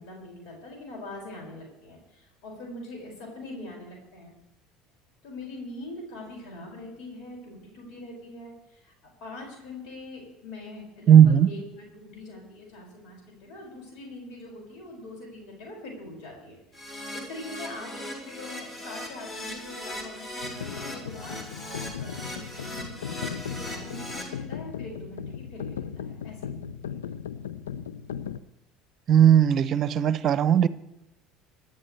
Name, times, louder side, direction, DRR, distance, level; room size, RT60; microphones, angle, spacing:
voice 1, 0.0-4.4 5.2-8.9 9.2-21.4 22.0-27.0, left 2 dB, 60° left, 6.0 m, -43 dB
voice 2, 11.1-11.5 29.1-30.7, right 9 dB, 45° right, 0.8 m, -17 dB
Keyboard (musical), 16.7-24.2, left 1 dB, 25° left, 6.3 m, -38 dB
sound 1, 20.4-28.4, left 8 dB, 75° left, 0.7 m, -37 dB
25.5 x 11.5 x 3.4 m
figure-of-eight pair, 65°, 0 cm